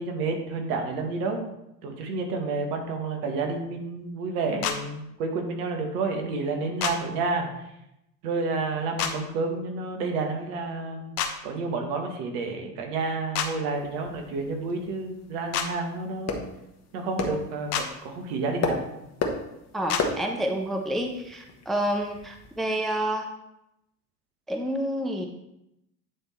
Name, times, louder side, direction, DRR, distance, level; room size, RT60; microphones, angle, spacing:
voice 1, 0.0-1.5 1.8-7.5 8.2-11.1 11.4-16.4 16.9-18.8, right 3 dB, 65° right, 3 dB, 1.7 m, -30 dB
sound 1, 4.6-4.8 6.8-6.9 9.0-9.1 11.2-11.3 13.3-13.5 15.5-15.7 17.7-17.9 19.9-20.0, left 8 dB, 65° left, 1.1 m, -27 dB
sound 2, 13.7-22.6, left 4 dB, 30° left, 1.4 m, -35 dB
voice 2, 19.7-23.3 24.5-25.3, right 1 dB, ahead, 3 dB, 0.7 m, -29 dB
9.3 x 3.7 x 4.3 m, 0.85 s
hypercardioid pair, 85°, 50 cm